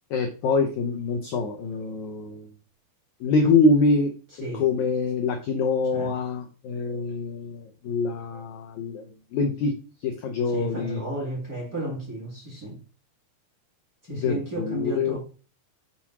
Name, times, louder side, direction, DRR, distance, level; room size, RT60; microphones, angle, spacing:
voice 1, 0.1-2.5 3.2-4.1 4.5-9.7 10.0-11.0 14.1-15.2, left 3 dB, 75° left, 1.7 m, -25 dB
voice 2, 10.5-12.8 14.1-15.2, right 1 dB, 30° right, 1.8 m, -33 dB
7.2 x 4.3 x 6.0 m
omnidirectional pair, 4.7 m